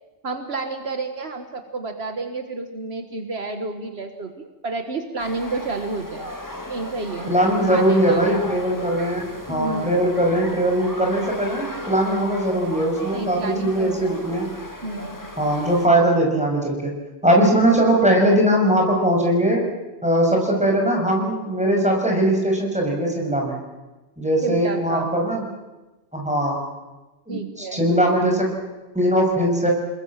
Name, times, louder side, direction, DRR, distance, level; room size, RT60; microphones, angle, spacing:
voice 1, 0.2-6.3 6.7-7.3 7.7-8.2 9.5-9.9 13.1-14.1 14.8-15.3 24.4-25.1 27.3-27.8, right 3 dB, 65° right, 6 dB, 1.9 m, -30 dB
sound 1, 5.2-15.9, left 1 dB, 15° left, 2.4 m, -36 dB
voice 2, 7.3-14.5 15.4-17.0 17.2-19.6 20.0-23.6 24.2-25.4 26.1-26.6 27.3-28.6 28.9-29.7, right 1 dB, 5° right, 0 dB, 6.5 m, -20 dB
29.0 x 21.0 x 7.5 m, 1.1 s
omnidirectional pair, 1.1 m